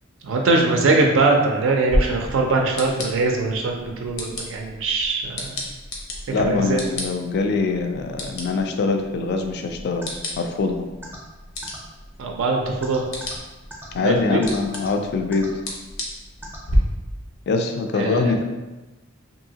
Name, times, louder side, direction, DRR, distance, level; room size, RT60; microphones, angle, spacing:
voice 1, 0.2-5.6 6.4-6.8 12.2-13.1 14.0-14.4 17.9-18.4, right 3 dB, 70° right, 1 dB, 0.4 m, -21 dB
sound 1, 1.9-16.8, left 1 dB, 85° left, 0.7 m, -33 dB
voice 2, 6.3-10.1 10.4-10.9 13.9-15.5 17.5-18.4, left 4 dB, 55° left, 5 dB, 0.3 m, -23 dB
sound 2, 10.0-10.1 11.0-11.2 11.6-11.8 12.8-13.3 13.7-13.8 14.4-14.9 15.3-15.5 16.4-16.6, right 1 dB, 10° right, 0.5 m, -38 dB
2.7 x 2.7 x 2.7 m, 1.1 s
head